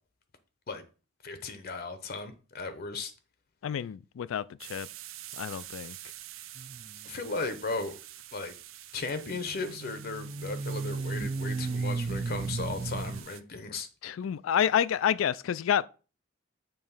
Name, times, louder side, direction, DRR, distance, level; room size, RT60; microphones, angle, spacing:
voice 1, 1.2-3.1 7.0-7.9 8.3-8.6 8.9-13.9, left 3 dB, 50° left, 0.7 m, -36 dB
voice 2, 3.6-4.9 5.4-6.0 14.0-15.9, left 9 dB, 80° left, 0.3 m, -28 dB
sound 1, 4.6-13.4, right 13 dB, 90° right, 0.5 m, -47 dB
Free Zombie Moan Sounds, 6.6-6.9 9.2-13.2, right 3 dB, 30° right, 0.3 m, -34 dB
6.9 x 3.1 x 5.5 m
head